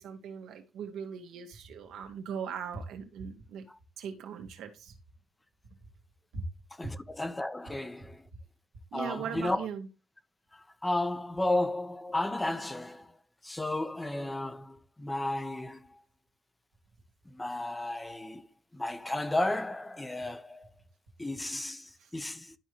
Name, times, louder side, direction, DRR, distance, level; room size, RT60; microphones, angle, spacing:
voice 1, 0.0-3.7 4.0-4.9 6.3-6.4 6.8-6.9 8.9-9.9 22.0-22.1, right 7 dB, 85° right, 1.8 m, -39 dB
voice 2, 6.8-8.3 8.9-9.7 10.5-13.2 13.4-16.0 17.3-18.5 18.7-20.7 21.2-22.6, left 2 dB, 15° left, 0.9 m, -33 dB
12.0 x 4.6 x 3.0 m
cardioid pair, 90°, 0 cm